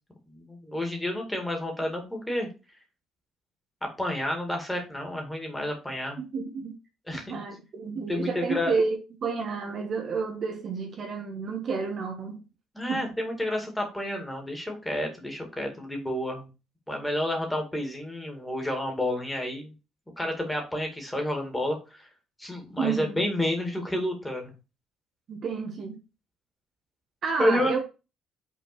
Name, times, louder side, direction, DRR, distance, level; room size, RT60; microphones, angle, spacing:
voice 1, 0.3-2.5 3.8-6.2 7.1-7.4 8.1-8.8 12.7-16.5 16.9-19.7 20.2-22.1 22.4-24.5 27.4-27.7, left 1 dB, 5° left, 2.2 m, -30 dB
voice 2, 6.2-6.7 7.1-12.4 12.9-13.0 22.8-23.3 25.3-26.0 27.2-27.8, right 5 dB, 40° right, 1.4 m, -30 dB
6.0 x 4.1 x 6.0 m
cardioid pair, 150°, 0 cm